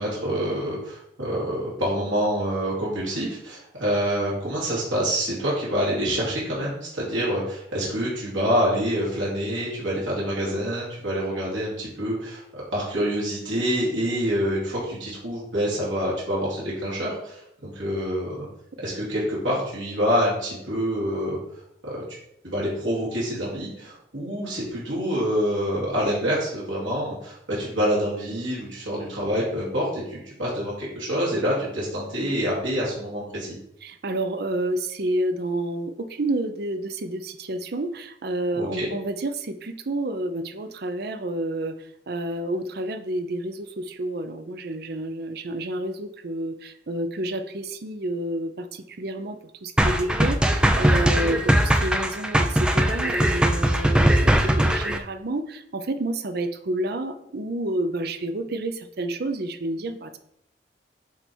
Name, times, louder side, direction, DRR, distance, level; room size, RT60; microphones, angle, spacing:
voice 1, 0.0-18.5 18.8-22.0 22.4-33.6 38.6-38.9 51.1-51.4, equal, 85° right, -7 dB, 2.4 m, -27 dB
voice 2, 33.8-60.2, right 1 dB, 55° right, 9 dB, 0.6 m, -29 dB
sound 1, 49.8-55.0, right 1 dB, 5° right, 0.4 m, -20 dB
8.2 x 3.4 x 4.5 m, 0.76 s
head